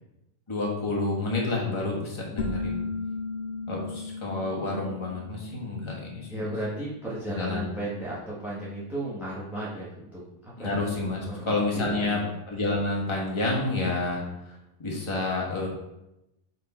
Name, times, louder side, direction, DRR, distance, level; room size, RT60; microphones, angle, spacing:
voice 1, 0.5-2.8 3.7-6.5 7.4-7.7 10.6-12.2 12.5-15.7, left 2 dB, 20° left, -2 dB, 1.2 m, -29 dB
sound 1, 2.4-7.8, left 3 dB, 65° left, 0.8 m, -36 dB
voice 2, 6.3-10.7 11.3-12.3, right 1 dB, ahead, -7 dB, 1.2 m, -35 dB
5.2 x 4.5 x 4.3 m, 0.89 s
omnidirectional pair, 1.8 m